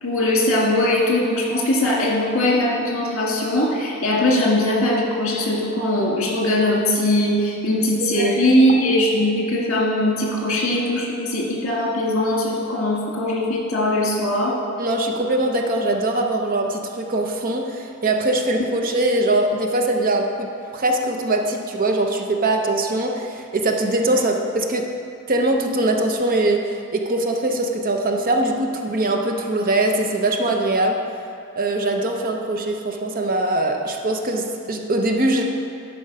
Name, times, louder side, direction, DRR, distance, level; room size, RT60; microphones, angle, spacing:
voice 1, 0.0-14.6, left 1 dB, 70° left, -3 dB, 1.9 m, -20 dB
voice 2, 8.0-8.3 14.8-20.5 20.7-24.9 25.3-26.7 26.9-31.0 31.6-35.4, right 2 dB, 40° right, 3 dB, 0.7 m, -22 dB
11.0 x 4.6 x 5.3 m, 2.6 s
head